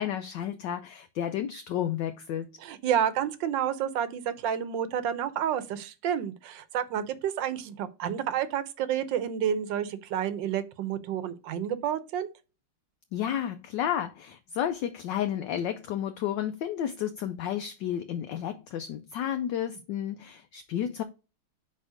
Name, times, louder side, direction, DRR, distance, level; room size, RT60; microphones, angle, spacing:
voice 1, 0.0-2.5 13.1-21.0, left 10 dB, 75° left, 1.1 m, -32 dB
voice 2, 2.6-12.3, right 9 dB, 70° right, 1.3 m, -30 dB
5.4 x 4.2 x 5.0 m
omnidirectional pair, 2.3 m